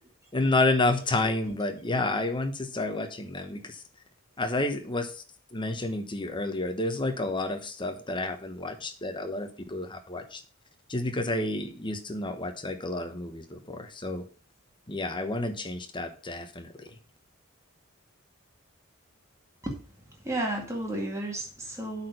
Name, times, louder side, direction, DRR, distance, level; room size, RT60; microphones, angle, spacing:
voice 1, 0.3-3.8 4.4-5.2 5.5-10.4 10.9-14.3 14.9-16.9, left 2 dB, 25° left, 7 dB, 1.1 m, -30 dB
voice 2, 20.1-22.1, right 1 dB, 15° right, 0 dB, 2.1 m, -33 dB
8.5 x 4.5 x 6.6 m, 0.39 s
head